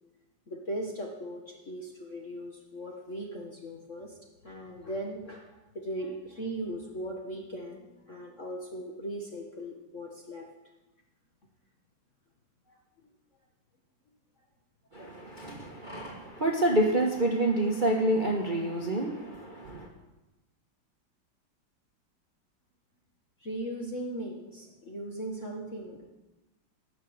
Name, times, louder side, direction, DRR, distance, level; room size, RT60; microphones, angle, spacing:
voice 1, 0.5-4.2 4.4-10.4 23.4-26.1, right 1 dB, 40° left, 0 dB, 1.7 m, -38 dB
voice 2, 14.9-19.9, right 1 dB, 25° right, 0 dB, 1.3 m, -28 dB
18.0 x 6.6 x 7.9 m, 1.1 s
omnidirectional pair, 2.3 m